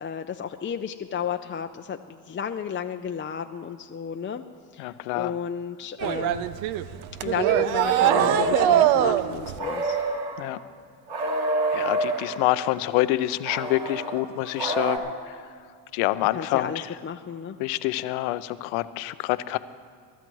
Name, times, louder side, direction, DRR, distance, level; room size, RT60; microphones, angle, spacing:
voice 1, 0.0-4.4 4.7-6.5 7.2-10.0 16.3-17.6, left 7 dB, 25° left, 6 dB, 0.5 m, -33 dB
voice 2, 4.8-5.3 10.4-10.6 11.7-15.3 15.9-16.9 17.6-19.6, left 16 dB, 75° left, 14 dB, 0.7 m, -26 dB
sound 1, 6.0-9.6, right 11 dB, 75° right, 0.8 m, -22 dB
sound 2, 8.0-9.0 9.6-10.5 11.1-12.4 13.4-15.0, right 1 dB, 50° right, 3.6 m, -28 dB
23.0 x 12.5 x 3.1 m, 2.1 s
supercardioid pair, 75°, 49 cm